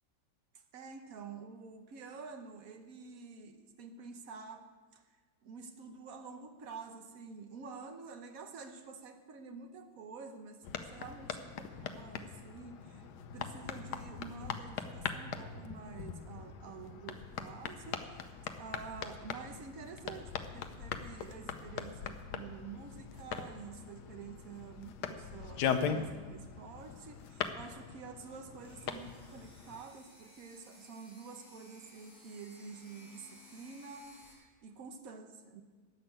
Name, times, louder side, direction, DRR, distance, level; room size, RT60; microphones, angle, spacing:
voice 1, 0.5-5.0 5.4-13.1 13.3-18.2 18.6-35.6, right 5 dB, 60° right, 6 dB, 1.4 m, -49 dB
sound 1, 10.6-29.8, left 7 dB, 75° left, 1.4 m, -41 dB
sound 2, 28.6-34.3, left 1 dB, 25° left, 3.5 m, -59 dB
14.0 x 6.0 x 9.1 m, 1.4 s
omnidirectional pair, 1.8 m